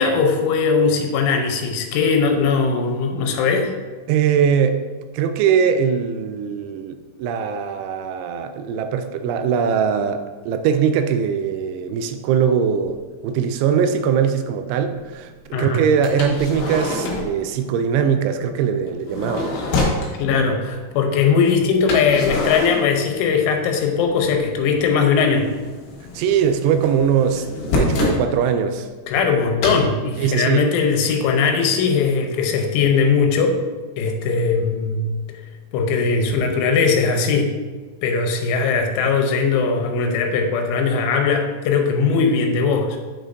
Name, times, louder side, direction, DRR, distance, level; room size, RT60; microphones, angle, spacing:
voice 1, 0.0-3.7 15.5-15.9 20.2-25.5 29.1-33.5 34.0-35.1 35.7-37.5 38.0-43.0, left 5 dB, 85° left, 4 dB, 3.2 m, -19 dB
voice 2, 4.1-4.8 5.1-13.0 13.2-19.6 26.1-27.5 27.7-28.9 29.2-29.4 30.2-30.7, right 7 dB, 85° right, 8 dB, 2.9 m, -21 dB
sound 1, 12.9-13.0 13.7-13.8 16.0-17.4 18.9-20.1 21.9-23.6 23.8-24.7 24.9-28.2 29.6-29.8, left 2 dB, 65° left, 2.9 m, -25 dB
8.6 x 6.9 x 2.6 m, 1.4 s
omnidirectional pair, 5.4 m